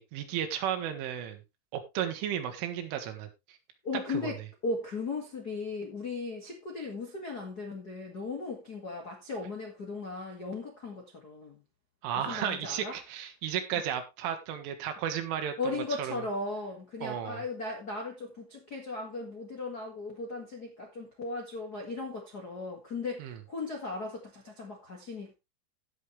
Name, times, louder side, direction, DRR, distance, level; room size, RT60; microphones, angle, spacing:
voice 1, 0.0-1.4 1.7-3.6 4.1-4.3 12.0-15.5 16.0-16.2 17.0-17.4 23.2-23.4, right 9 dB, 80° right, 3.8 m, -34 dB
voice 2, 3.8-11.6 12.2-13.0 15.6-25.3, left 3 dB, 75° left, 0.9 m, -37 dB
16.5 x 6.3 x 3.2 m
omnidirectional pair, 5.7 m